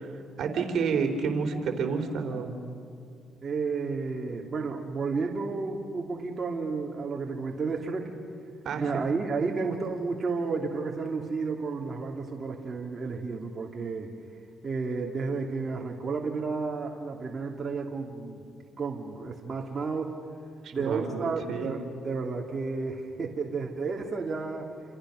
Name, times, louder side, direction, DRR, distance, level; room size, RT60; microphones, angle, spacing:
voice 1, 0.4-2.5 8.6-8.8 20.6-21.7, right 5 dB, 65° right, 4 dB, 3.4 m, -29 dB
voice 2, 3.4-8.1 8.8-14.1 14.6-18.4 18.8-20.2 20.7-24.7, right 4 dB, 35° right, 0 dB, 2.8 m, -32 dB
29.0 x 27.0 x 6.5 m, 2.4 s
cardioid pair, 90°, 0 cm